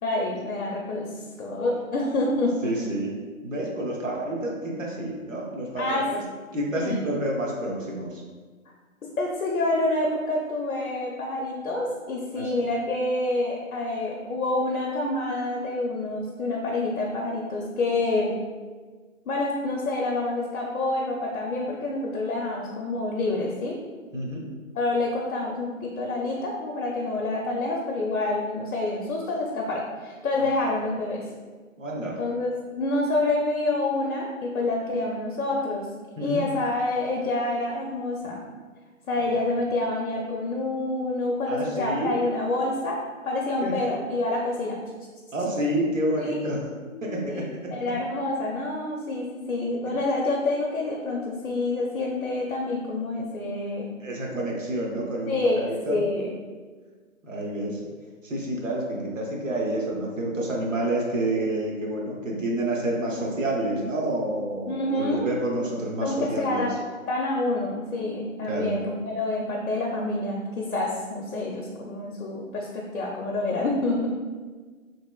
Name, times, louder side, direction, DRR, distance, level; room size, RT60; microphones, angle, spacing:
voice 1, 0.0-1.1 1.4-2.9 5.8-6.0 6.7-7.3 9.0-18.3 19.3-23.8 24.7-31.2 32.2-35.9 36.2-38.4 39.1-43.0 43.2-44.8 46.2-46.4 46.8-53.9 55.3-56.3 64.7-65.3 66.0-66.8 67.1-74.1, left 2 dB, 70° left, -1 dB, 0.6 m, -27 dB
voice 2, 2.6-3.1 3.4-6.2 6.5-8.2 12.4-12.5 24.1-24.5 31.8-32.2 36.2-36.4 41.5-42.1 43.6-43.7 45.3-46.6 47.0-47.4 54.0-56.0 57.2-57.8 58.2-66.7 68.5-68.8, right 1 dB, 65° right, -2 dB, 0.8 m, -29 dB
2.9 x 2.8 x 2.2 m, 1.4 s
figure-of-eight pair, 150°, 42 cm